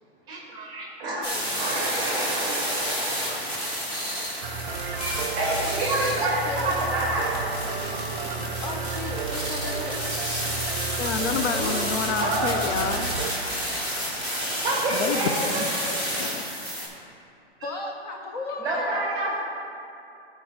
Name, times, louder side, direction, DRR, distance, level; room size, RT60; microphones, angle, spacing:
voice 1, 0.3-1.3 1.6-3.8 4.7-7.7 12.2-12.6 13.4-15.7 17.6-17.7 18.6-19.4, right 2 dB, 10° right, 0.9 m, -29 dB
voice 2, 1.0-2.4 6.5-6.8 8.6-10.0 11.5-12.0 17.6-19.1, left 3 dB, 40° left, 0.5 m, -36 dB
sound 1, 1.2-16.9, equal, 15° left, 0.8 m, -31 dB
voice 3, 3.3-3.8 4.1-4.3 6.0-6.3 10.7-13.1 14.9-15.7 16.2-16.4, left 6 dB, 85° left, 0.6 m, -30 dB
sound 2, 4.4-13.3, right 5 dB, 50° right, 0.4 m, -33 dB
13.0 x 4.5 x 2.8 m
hypercardioid pair, 170°, 33 cm